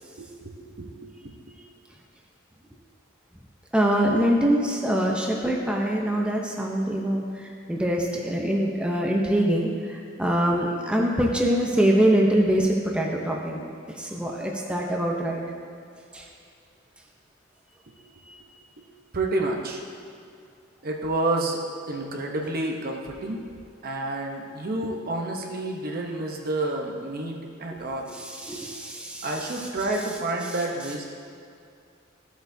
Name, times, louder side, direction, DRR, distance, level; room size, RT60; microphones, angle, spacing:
voice 1, 0.2-0.9 1.2-1.3 18.8-18.9 19.1-19.8 20.8-21.6 21.9-23.4 23.8-28.1 29.2-31.0, right 2 dB, 45° right, 1 dB, 0.9 m, -29 dB
voice 2, 3.7-7.2 7.7-13.6 14.0-15.4 16.1-16.2 28.1-29.3, right 1 dB, 5° right, -2 dB, 0.7 m, -24 dB
13.0 x 8.0 x 2.7 m, 2.4 s
head